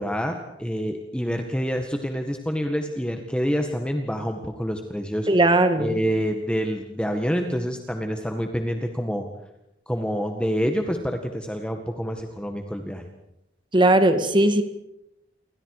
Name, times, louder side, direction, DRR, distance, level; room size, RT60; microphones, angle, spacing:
voice 1, 0.0-5.3 5.8-9.3 9.9-13.1, equal, 5° left, 4 dB, 1.9 m, -27 dB
voice 2, 5.3-6.0 13.7-14.6, right 1 dB, 25° right, 8 dB, 2.0 m, -18 dB
30.0 x 24.5 x 5.0 m, 0.84 s
head